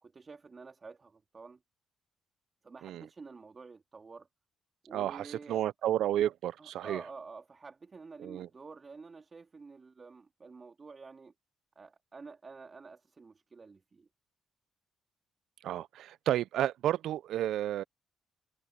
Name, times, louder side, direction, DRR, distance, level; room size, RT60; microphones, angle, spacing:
voice 1, 0.0-1.6 2.6-4.3 4.8-5.6 6.6-11.3 11.7-14.1, right 4 dB, 35° right, 2.8 m, -49 dB
voice 2, 4.9-7.0 8.2-8.5 15.6-17.8, right 12 dB, 80° right, 0.4 m, -31 dB
cardioid pair, 90°, 0 cm